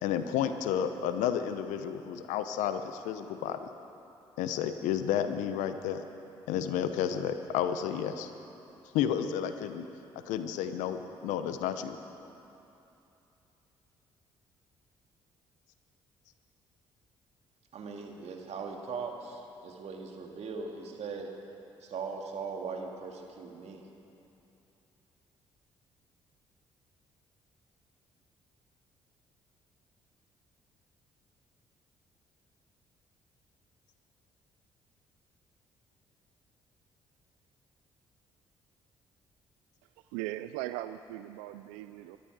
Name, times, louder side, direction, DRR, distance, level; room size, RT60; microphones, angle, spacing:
voice 1, 0.0-3.7 4.4-6.0 6.5-8.3 8.9-9.8 10.3-12.0, left 9 dB, 75° left, 9 dB, 0.9 m, -31 dB
voice 2, 17.7-21.3 21.8-23.8, right 5 dB, 60° right, 1 dB, 2.3 m, -39 dB
voice 3, 40.1-42.2, right 15 dB, 80° right, 11 dB, 0.4 m, -38 dB
24.0 x 12.5 x 4.9 m, 2.9 s
hypercardioid pair, 50°, 13 cm